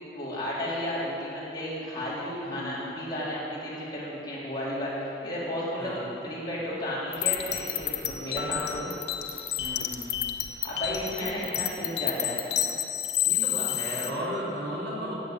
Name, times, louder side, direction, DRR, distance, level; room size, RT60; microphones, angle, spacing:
voice 1, 0.1-8.9 10.6-12.4, equal, 25° left, -8 dB, 3.9 m, -33 dB
voice 2, 2.4-2.8 5.8-6.1 9.6-10.1 11.1-11.3 13.2-15.1, equal, 65° right, -6 dB, 4.3 m, -35 dB
sound 1, 7.1-14.1, left 11 dB, 80° left, 0.8 m, -30 dB
15.0 x 8.6 x 9.1 m, 2.9 s
head